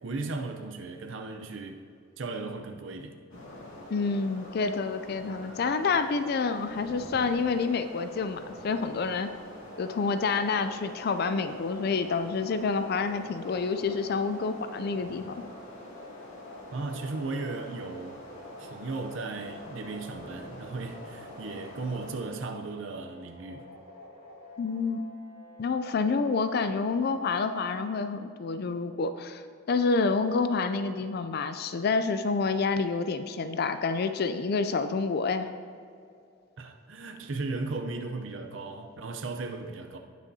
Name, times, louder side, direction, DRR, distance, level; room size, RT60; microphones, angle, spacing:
voice 1, 0.0-1.8 2.2-3.2 16.7-18.2 18.6-23.7 36.6-40.0, right 3 dB, 65° right, 4 dB, 0.6 m, -36 dB
sound 1, 3.3-22.1, left 1 dB, 80° left, 2.5 m, -45 dB
voice 2, 3.9-9.3 9.8-15.3 24.6-25.0 25.6-35.5, left 4 dB, 50° left, 10 dB, 0.4 m, -28 dB
sound 2, 9.7-27.7, left 1 dB, 30° right, 1.8 m, -50 dB
17.0 x 6.3 x 2.8 m, 2.4 s
head